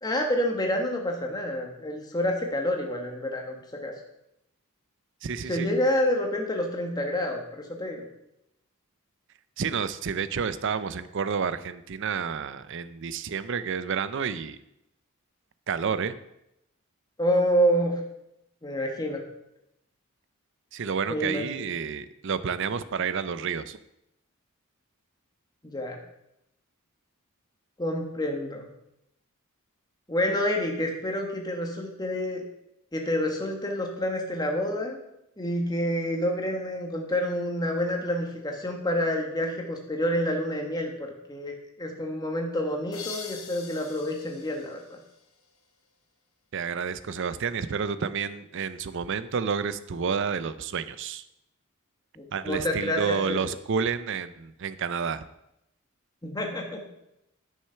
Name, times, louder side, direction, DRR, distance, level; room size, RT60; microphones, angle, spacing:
voice 1, 0.0-3.5 3.8-3.9 5.5-8.0 17.2-18.0 18.6-19.2 21.1-21.6 25.6-26.0 27.8-28.7 30.1-32.4 32.9-35.0 35.4-45.0 52.1-53.4 56.2-56.8, equal, 20° left, 2 dB, 1.4 m, -28 dB
voice 2, 5.2-5.7 9.6-14.6 15.7-16.2 20.7-23.8 46.5-51.2 52.3-55.2, right 6 dB, 55° right, 14 dB, 0.5 m, -30 dB
sound 1, 42.9-45.6, left 6 dB, 75° left, 1.3 m, -43 dB
10.0 x 6.5 x 5.7 m, 0.84 s
head